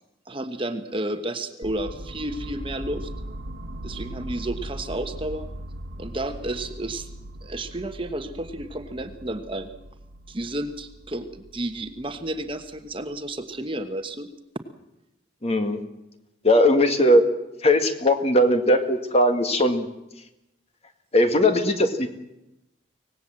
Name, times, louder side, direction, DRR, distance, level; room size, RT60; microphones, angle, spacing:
voice 1, 0.3-3.1 3.8-5.5 6.0-7.1 7.4-9.7 10.3-14.3, right 1 dB, 30° right, 8 dB, 1.2 m, -31 dB
sound 1, 1.6-13.5, right 1 dB, 80° right, 1.2 m, -39 dB
voice 2, 15.4-15.8 16.4-17.3 17.6-19.9 21.1-22.1, left 1 dB, 35° left, 7 dB, 1.9 m, -19 dB
25.0 x 18.5 x 7.6 m, 0.91 s
head